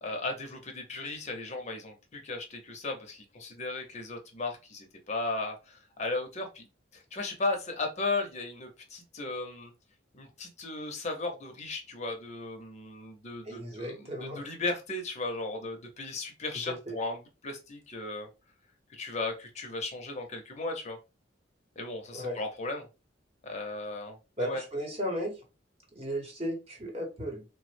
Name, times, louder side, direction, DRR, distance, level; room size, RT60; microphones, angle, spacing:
voice 1, 0.0-6.7 6.9-9.7 10.1-18.3 18.9-21.0 21.8-22.9 23.4-24.6, left 2 dB, 35° left, 3 dB, 0.6 m, -36 dB
voice 2, 13.4-14.4 16.7-17.0 22.1-22.4 24.4-25.3 25.9-27.4, equal, 30° right, 0 dB, 0.9 m, -35 dB
3.3 x 2.0 x 3.1 m, 0.29 s
head